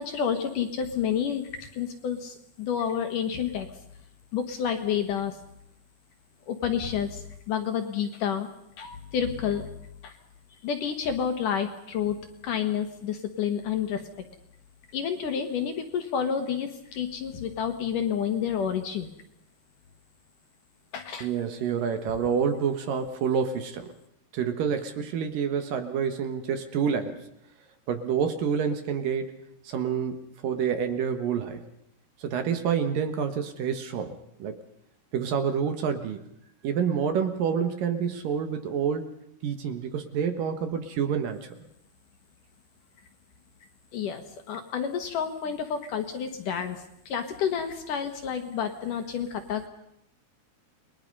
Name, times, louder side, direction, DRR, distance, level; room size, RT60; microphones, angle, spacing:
voice 1, 0.0-3.7 4.3-5.4 6.5-8.5 8.8-9.7 10.0-10.1 10.6-12.2 12.4-14.0 14.9-19.1 20.9-21.3 43.9-49.6, left 8 dB, 60° left, 7 dB, 2.6 m, -29 dB
voice 2, 21.2-23.9 24.3-27.3 27.9-31.6 32.2-34.6 35.1-36.3 36.6-39.1 39.4-41.5, right 7 dB, 65° right, 8 dB, 2.8 m, -28 dB
29.5 x 21.5 x 5.4 m, 0.75 s
omnidirectional pair, 4.7 m